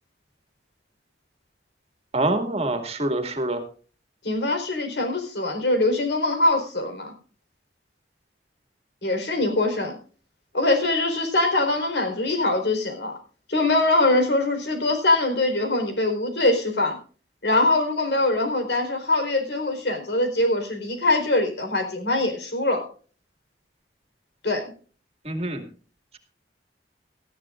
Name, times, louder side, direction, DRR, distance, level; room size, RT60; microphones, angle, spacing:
voice 1, 2.1-3.6 25.3-25.6, right 2 dB, 35° right, 6 dB, 2.2 m, -25 dB
voice 2, 4.2-7.1 9.0-10.0 10.5-13.2 13.5-17.0 17.4-22.8 24.4-24.7, left 2 dB, 75° left, 5 dB, 4.3 m, -23 dB
18.5 x 13.5 x 2.5 m, 0.39 s
head